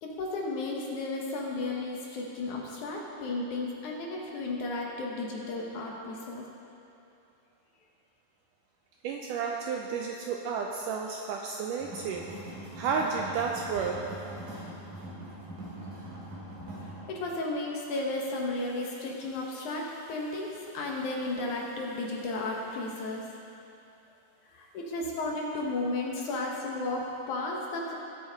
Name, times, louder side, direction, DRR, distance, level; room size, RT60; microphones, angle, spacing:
voice 1, 0.0-6.4 17.1-23.3 24.5-27.9, left 2 dB, 65° left, -1 dB, 2.2 m, -34 dB
voice 2, 9.0-12.3 12.7-14.1, right 5 dB, 85° right, 1 dB, 1.9 m, -32 dB
sound 1, 11.8-17.0, right 1 dB, 65° right, 4.1 m, -42 dB
19.5 x 7.9 x 4.0 m, 2.8 s
omnidirectional pair, 4.3 m